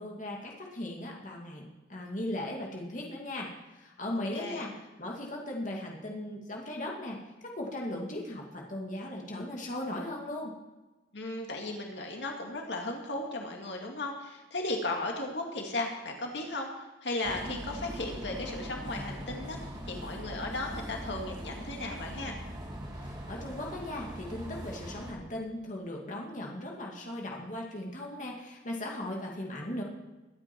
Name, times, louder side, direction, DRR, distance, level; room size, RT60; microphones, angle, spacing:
voice 1, 0.0-3.5 3.8-4.7 5.0-10.5 22.9-29.8, left 1 dB, 45° left, -1 dB, 2.2 m, -38 dB
voice 2, 4.1-4.7 11.1-22.4, left 2 dB, 75° left, 1 dB, 2.1 m, -36 dB
sound 1, 17.2-25.1, equal, 20° right, 1.9 m, -41 dB
22.5 x 8.8 x 4.5 m, 1.1 s
head